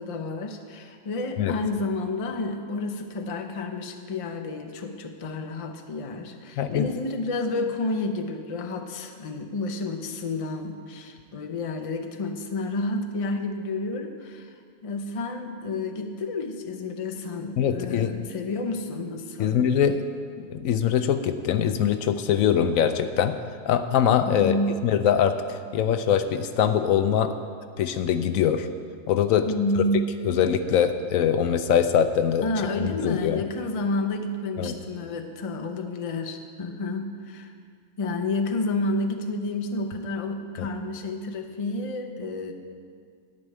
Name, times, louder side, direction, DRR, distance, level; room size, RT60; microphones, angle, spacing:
voice 1, 0.0-14.5 14.8-19.6 24.2-24.8 29.4-30.1 32.4-37.5 38.0-42.5, left 2 dB, 35° left, 5 dB, 0.6 m, -30 dB
voice 2, 6.6-6.9 17.6-18.1 19.4-20.0 20.4-23.4 23.7-24.5 24.8-27.3 27.8-28.7 29.1-29.5 30.2-32.4 32.8-33.4 34.6-34.7 40.6-40.7, left 9 dB, 75° left, 9 dB, 1.0 m, -23 dB
11.5 x 5.5 x 8.8 m, 2.1 s
omnidirectional pair, 1.5 m